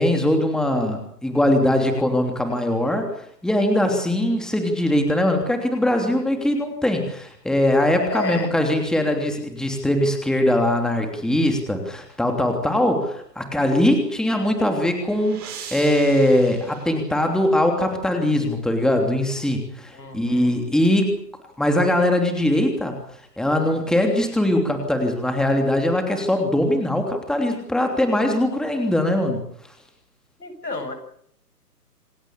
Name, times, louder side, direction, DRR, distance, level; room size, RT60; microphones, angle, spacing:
voice 1, 0.0-3.1 3.4-21.1 21.6-23.0 23.4-29.4, left 1 dB, ahead, 4 dB, 3.1 m, -21 dB
voice 2, 8.1-8.5 19.9-20.5 30.4-30.9, left 3 dB, 85° left, 8 dB, 7.7 m, -31 dB
sound 1, 14.6-17.7, right 7 dB, 20° right, 7.0 m, -41 dB
27.5 x 17.5 x 8.3 m, 0.68 s
figure-of-eight pair, 135°, 48 cm